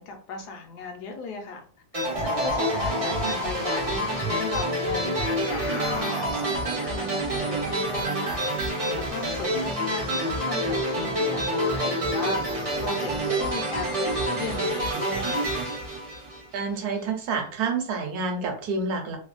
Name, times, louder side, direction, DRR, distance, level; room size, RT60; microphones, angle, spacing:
voice 1, 0.0-1.6 2.2-15.5, left 4 dB, 70° left, 4 dB, 1.2 m, -37 dB
sound 1, 1.9-16.8, right 1 dB, 45° right, 0.4 m, -27 dB
sound 2, 2.0-4.5 5.1-6.8, right 1 dB, 50° left, 0.9 m, -34 dB
voice 2, 16.5-19.2, right 4 dB, 65° right, 4 dB, 1.2 m, -28 dB
3.2 x 2.2 x 2.5 m, 0.42 s
omnidirectional pair, 1.9 m